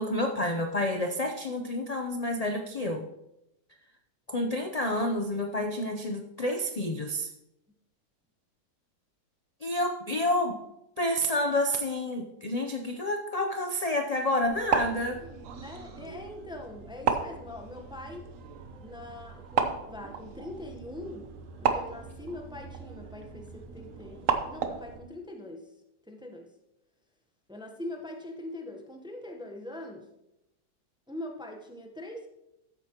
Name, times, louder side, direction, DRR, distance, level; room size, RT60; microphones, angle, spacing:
voice 1, 0.0-3.0 4.3-7.3 9.6-10.6 11.0-15.2, left 1 dB, 45° left, 4 dB, 0.5 m, -29 dB
sound 1, 14.4-25.0, right 6 dB, 60° right, 1.2 m, -34 dB
voice 2, 15.6-18.3 18.8-21.3 21.6-25.6 26.1-26.5 27.5-30.1 31.1-32.3, left 1 dB, 5° right, 3 dB, 0.7 m, -42 dB
14.0 x 8.2 x 3.0 m, 0.87 s
omnidirectional pair, 1.7 m